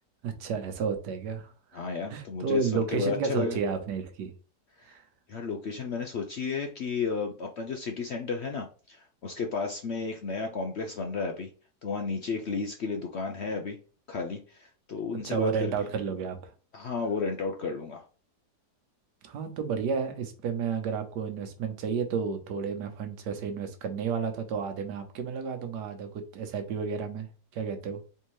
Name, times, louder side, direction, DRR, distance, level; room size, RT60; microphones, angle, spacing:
voice 1, 0.2-1.8 2.1-4.3 4.9-5.0 15.2-16.5 19.2-27.3 27.5-28.0, right 6 dB, 85° right, 1.4 m, -31 dB
voice 2, 1.7-3.6 5.3-11.5 11.8-13.8 14.1-15.7 16.7-18.0, left 4 dB, 60° left, 0.7 m, -33 dB
4.5 x 3.5 x 3.1 m
omnidirectional pair, 1.8 m